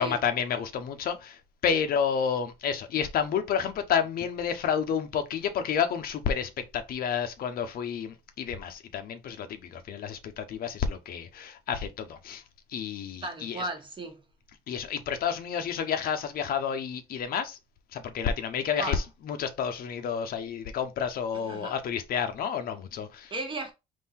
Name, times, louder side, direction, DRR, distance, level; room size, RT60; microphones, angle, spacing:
voice 1, 0.0-12.4 12.7-13.6 14.7-17.6 17.9-23.3, left 7 dB, 60° left, 0.8 m, -30 dB
voice 2, 13.2-14.2 18.8-19.0 21.5-21.7 23.3-23.7, right 2 dB, 30° right, 1.3 m, -35 dB
3.7 x 2.7 x 4.2 m
cardioid pair, 110°, 17 cm